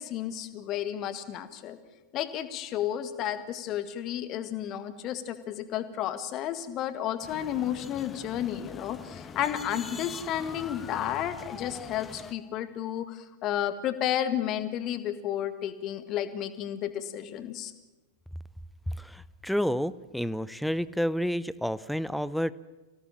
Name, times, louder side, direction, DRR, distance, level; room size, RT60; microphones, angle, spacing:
voice 1, 0.0-1.8 2.1-17.7, left 11 dB, 35° left, 10 dB, 1.8 m, -32 dB
sound 1, 7.2-12.3, left 5 dB, 20° left, 1.1 m, -43 dB
voice 2, 18.9-22.5, equal, ahead, 18 dB, 0.7 m, -30 dB
25.0 x 17.0 x 7.5 m, 1.1 s
figure-of-eight pair, 90°, 0 cm